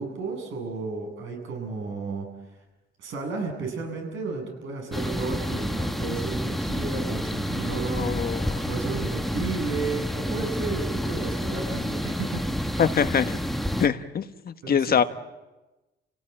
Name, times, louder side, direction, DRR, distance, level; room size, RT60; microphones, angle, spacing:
voice 1, 0.0-2.3 3.0-8.3 8.7-12.5 14.6-15.0, right 4 dB, 80° right, 2 dB, 7.9 m, -33 dB
sound 1, 4.9-13.9, equal, ahead, 1.4 m, -29 dB
voice 2, 8.0-8.6 12.8-13.4 13.8-15.0, left 7 dB, 50° left, 10 dB, 1.4 m, -24 dB
30.0 x 17.5 x 8.9 m, 1.1 s
cardioid pair, 90°, 20 cm